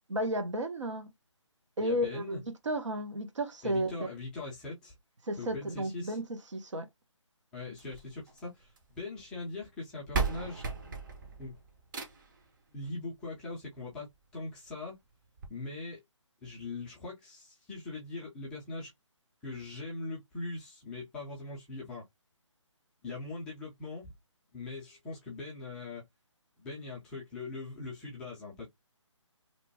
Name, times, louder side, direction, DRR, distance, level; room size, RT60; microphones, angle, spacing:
voice 1, 0.1-1.1 1.8-4.1 5.3-6.2 6.5-6.9, equal, 70° right, 0.9 m, -33 dB
voice 2, 1.8-2.4 3.6-4.9 5.4-6.2 7.5-10.6 11.4-11.6 12.7-14.1 14.3-15.0 15.5-16.0 16.4-18.9 19.4-22.0 23.0-24.1 24.5-26.0 26.6-28.7, left 3 dB, 5° left, 0.4 m, -41 dB
sound 1, 7.8-9.0 9.8-9.9 10.1-12.4 13.8-13.9 14.3-14.4 14.7-14.8 15.4-15.5, right 4 dB, 40° right, 0.8 m, -36 dB
2.9 x 2.1 x 2.7 m
figure-of-eight pair, 150°, 16 cm